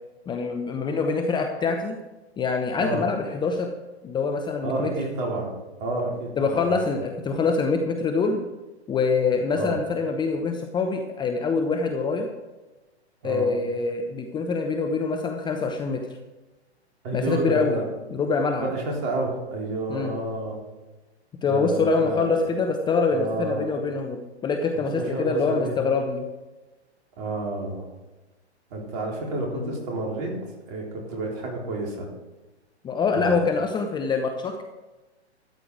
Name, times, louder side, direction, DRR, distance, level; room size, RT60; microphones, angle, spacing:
voice 1, 0.3-2.0 2.4-3.7 4.0-4.9 6.4-8.4 8.9-12.3 13.2-16.1 17.1-17.8 18.1-18.7 19.9-20.1 21.4-26.3 29.5-29.7 32.8-34.6, left 4 dB, 15° left, 4 dB, 0.8 m, -25 dB
voice 2, 4.6-5.5 5.8-6.8 9.5-9.8 13.2-13.5 17.0-17.8 18.6-20.6 21.4-22.4 23.1-23.6 24.7-25.7 27.2-27.8 28.7-30.3 30.7-32.1 33.1-33.4, right 2 dB, 40° right, -1 dB, 4.1 m, -30 dB
13.0 x 8.9 x 4.9 m, 1.1 s
figure-of-eight pair, 120°, 34 cm